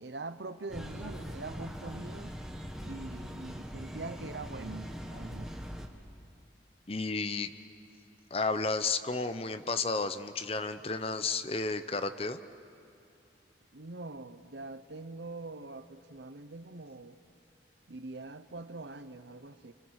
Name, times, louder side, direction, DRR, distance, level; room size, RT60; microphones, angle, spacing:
voice 1, 0.0-2.4 2.8-5.6 13.7-17.2 17.9-19.7, right 3 dB, 75° right, 0.9 m, -43 dB
sound 1, 0.7-5.9, equal, 5° right, 1.4 m, -41 dB
voice 2, 6.9-7.5 8.3-12.4, left 3 dB, 30° left, 0.8 m, -32 dB
30.0 x 26.0 x 6.5 m
head